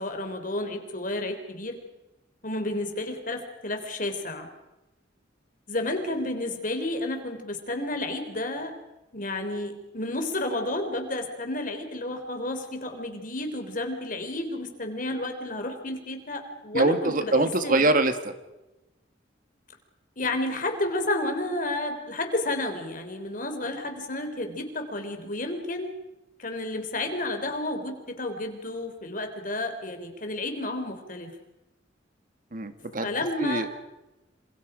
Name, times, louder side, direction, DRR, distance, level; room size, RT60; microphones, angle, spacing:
voice 1, 0.0-1.8 2.4-4.5 5.7-8.7 9.1-17.9 20.2-25.9 26.4-31.3 32.8-33.7, left 2 dB, 45° left, 6 dB, 3.8 m, -31 dB
voice 2, 16.7-18.1 32.5-33.1 33.4-33.7, right 2 dB, 45° right, 9 dB, 1.7 m, -23 dB
27.5 x 27.0 x 5.1 m, 0.99 s
head